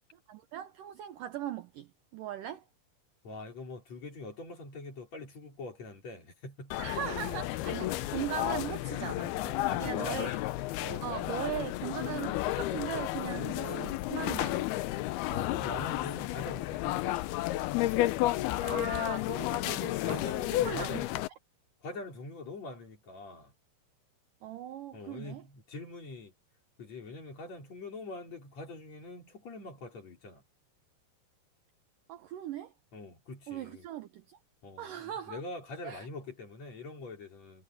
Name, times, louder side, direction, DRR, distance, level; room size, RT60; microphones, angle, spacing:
voice 1, 0.3-2.7 6.8-9.4 9.8-10.4 11.0-14.7 18.6-20.2 20.6-21.0 24.4-25.4 32.1-32.7 33.5-34.4 34.8-35.4 35.8-36.1, right 11 dB, 75° right, 2.1 m, -39 dB
voice 2, 3.2-6.7 9.4-10.2 10.8-11.3 13.2-13.4 15.3-17.3 20.1-21.1 21.8-23.5 24.9-26.3 26.8-30.4 32.9-33.9 34.6-37.6, left 2 dB, 40° left, 5.2 m, -44 dB
sound 1, 6.7-21.3, left 16 dB, 80° left, 2.5 m, -32 dB
omnidirectional pair, 4.9 m